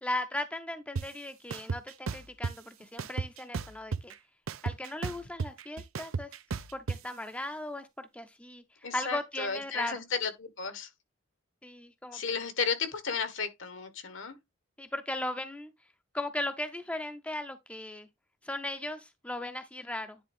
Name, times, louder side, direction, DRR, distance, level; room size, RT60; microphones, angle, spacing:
voice 1, 0.0-4.1 4.6-6.3 6.7-8.6 8.9-10.0 11.6-12.2 14.8-15.7 16.1-18.1 18.4-20.2, left 1 dB, 5° left, 0.5 m, -37 dB
sound 1, 1.0-1.1 1.5-2.5 3.0-4.1 4.5-7.0, right 5 dB, 85° right, 0.6 m, -34 dB
voice 2, 8.8-10.9 12.1-14.3, left 5 dB, 70° left, 1.3 m, -33 dB
10.0 x 3.5 x 3.5 m
head